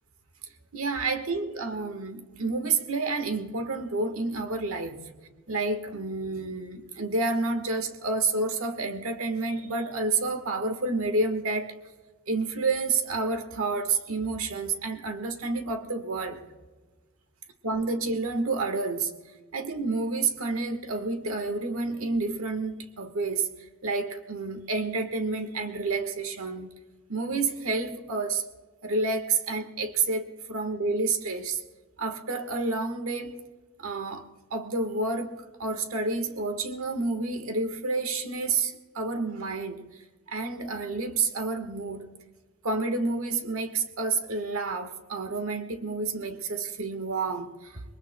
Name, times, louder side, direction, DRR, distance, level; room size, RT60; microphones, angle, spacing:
voice 1, 0.7-5.1 5.5-11.8 12.3-16.4 17.6-19.1 19.5-23.5 23.8-26.7 27.1-28.4 28.8-31.6 32.0-33.4 33.8-39.8 40.3-42.1 42.6-48.0, right 3 dB, 90° right, 1.4 m, -29 dB
26.5 x 21.0 x 2.2 m
head